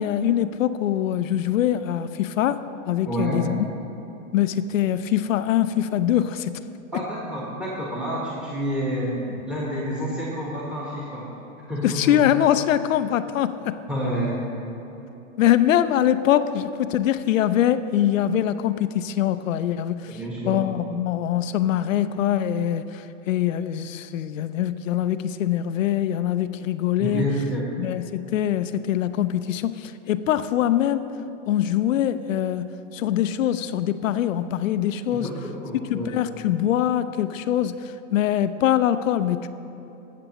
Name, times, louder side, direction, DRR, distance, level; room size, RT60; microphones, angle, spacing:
voice 1, 0.0-3.6 4.3-6.6 11.8-13.8 15.4-20.2 20.5-27.3 27.8-31.1 31.5-35.3 35.9-39.5, left 11 dB, 85° left, 12 dB, 0.6 m, -23 dB
voice 2, 3.1-3.5 6.9-11.3 11.7-12.2 13.9-14.4 20.1-20.6 27.0-27.7 35.1-36.2, right 1 dB, 5° right, -6 dB, 1.3 m, -29 dB
17.0 x 6.9 x 3.0 m, 3.0 s
hypercardioid pair, 125°, 38 cm